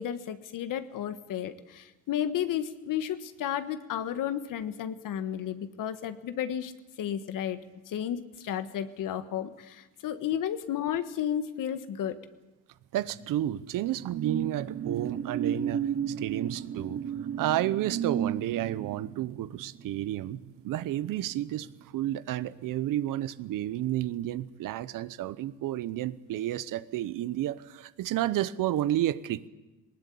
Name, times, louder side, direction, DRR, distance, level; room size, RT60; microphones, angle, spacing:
voice 1, 0.0-6.7 7.0-7.6 7.9-12.2, left 10 dB, 65° left, 11 dB, 1.5 m, -32 dB
voice 2, 12.9-15.9 16.2-17.0 17.4-21.7 21.9-29.5, right 13 dB, 70° right, 16 dB, 0.9 m, -31 dB
sound 1, 13.1-22.1 22.5-22.7, right 8 dB, 40° right, 0.9 m, -34 dB
20.0 x 19.0 x 8.5 m, 1.1 s
cardioid pair, 85°, 34 cm